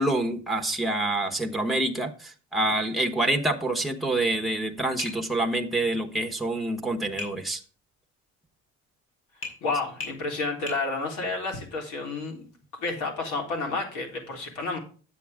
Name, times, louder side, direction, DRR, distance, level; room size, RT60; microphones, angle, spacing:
voice 1, 0.0-7.6, right 2 dB, ahead, 2 dB, 1.1 m, -27 dB
Tap, 5.0-5.2 7.2-7.4 9.4-9.6 10.0-10.2 10.7-10.8, left 3 dB, 45° left, 5.4 m, -35 dB
voice 2, 9.6-12.5 12.8-14.8, left 3 dB, 85° left, 1 dB, 3.6 m, -30 dB
10.0 x 8.4 x 3.5 m, 0.39 s
cardioid pair, 175°, 29 cm